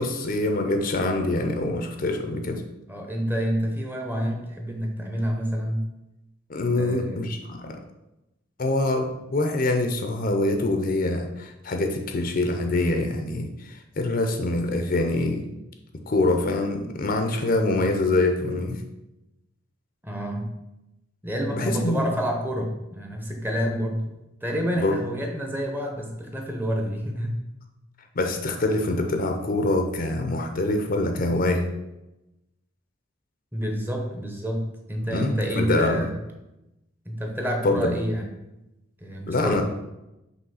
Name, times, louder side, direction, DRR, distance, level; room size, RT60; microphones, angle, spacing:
voice 1, 0.0-2.6 6.5-7.8 8.6-15.5 16.1-18.8 21.5-22.1 24.8-25.0 28.2-31.7 35.1-36.1 37.6-38.0 39.3-39.6, left 2 dB, 45° left, 5 dB, 0.5 m, -25 dB
voice 2, 2.9-5.9 6.8-7.3 20.0-20.6 21.2-24.2 24.4-27.4 33.5-36.1 37.1-38.3 39.0-39.6, equal, 10° right, 2 dB, 0.7 m, -28 dB
5.5 x 3.1 x 5.5 m, 0.93 s
head